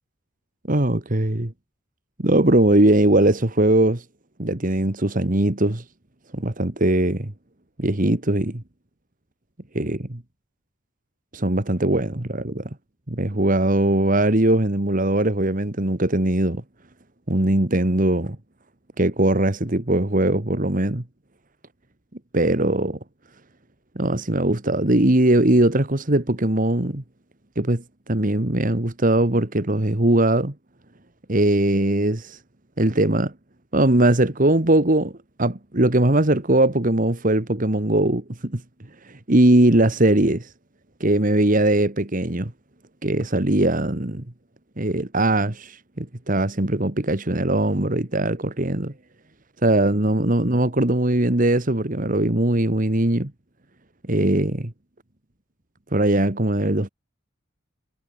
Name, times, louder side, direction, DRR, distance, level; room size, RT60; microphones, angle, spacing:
voice 1, 0.7-1.5 2.2-4.0 4.4-5.8 6.3-7.3 7.8-8.6 9.7-10.2 11.3-12.7 13.1-16.6 17.3-18.4 19.0-21.0 22.3-23.0 24.0-27.0 27.6-30.5 31.3-32.4 32.8-33.3 33.7-35.1 35.4-38.6 39.1-40.5 41.0-42.5 43.0-44.2 44.8-48.9 49.6-53.3 54.1-54.7 55.9-56.9, right 1 dB, 40° right, 1.8 m, -20 dB
head